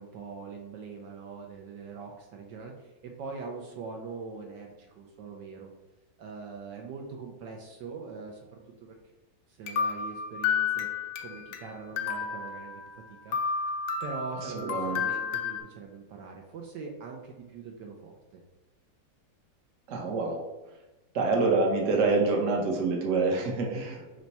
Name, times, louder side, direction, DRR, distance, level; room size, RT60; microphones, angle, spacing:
voice 1, 0.0-5.7 6.2-8.9 9.5-10.9 11.2-12.8 13.1-13.4 14.0-18.4, right 4 dB, 75° right, 1 dB, 1.2 m, -42 dB
sound 1, 9.7-11.6 12.0-13.0 13.3-15.6, left 6 dB, 70° left, 1.0 m, -31 dB
voice 2, 14.7-15.0 19.9-20.4 21.1-24.2, right 3 dB, 50° right, 0 dB, 1.1 m, -26 dB
5.9 x 2.2 x 4.0 m, 1.1 s
omnidirectional pair, 2.0 m